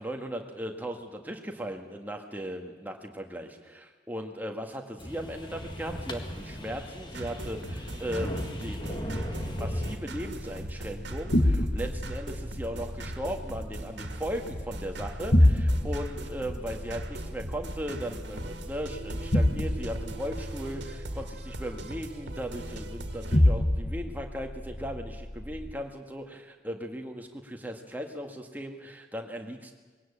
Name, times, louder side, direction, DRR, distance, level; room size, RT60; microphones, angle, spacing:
voice 1, 0.0-29.7, equal, 10° right, 3 dB, 1.8 m, -37 dB
sound 1, 5.0-10.0, equal, 25° left, 1.8 m, -36 dB
sound 2, 7.1-23.4, right 1 dB, 75° right, 2.0 m, -40 dB
sound 3, 8.9-25.7, left 1 dB, 55° left, 1.6 m, -29 dB
21.0 x 17.0 x 8.6 m, 1.4 s
head